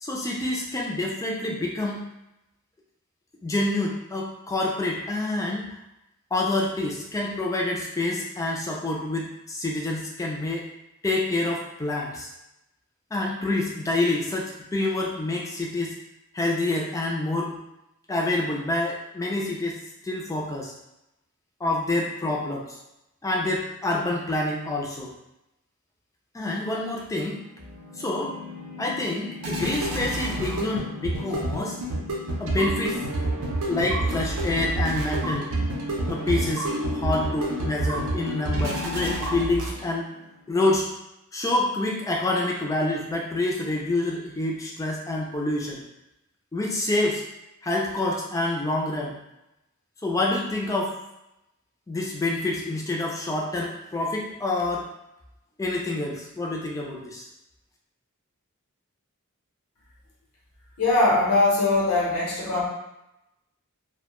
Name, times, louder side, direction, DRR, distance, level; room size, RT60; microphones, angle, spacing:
voice 1, 0.0-2.1 3.4-5.8 6.3-10.7 11.0-12.3 13.1-15.9 16.3-17.6 18.1-19.8 20.0-20.7 21.6-22.8 23.2-25.1 26.3-27.4 28.0-28.3 28.8-31.8 32.4-33.0 33.7-35.5 36.1-40.1 40.5-40.9 41.3-45.8 46.5-47.2 47.6-49.2 50.0-50.9 51.9-54.9 55.6-57.3, left 2 dB, 15° left, -1 dB, 0.3 m, -27 dB
sound 1, 27.3-40.1, right 1 dB, 80° right, 0.5 m, -29 dB
voice 2, 60.8-62.6, left 2 dB, 85° left, -5 dB, 0.8 m, -21 dB
2.1 x 2.1 x 2.9 m, 0.89 s
head